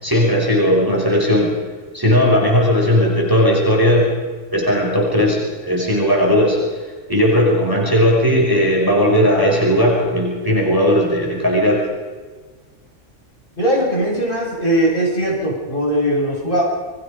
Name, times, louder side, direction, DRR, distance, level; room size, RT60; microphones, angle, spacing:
voice 1, 0.0-1.5 1.9-4.1 4.5-6.6 7.1-11.9, equal, 15° right, -2 dB, 5.2 m, -16 dB
voice 2, 13.6-16.6, right 1 dB, 35° left, -3 dB, 6.9 m, -19 dB
29.0 x 22.5 x 5.3 m, 1.4 s
omnidirectional pair, 1.5 m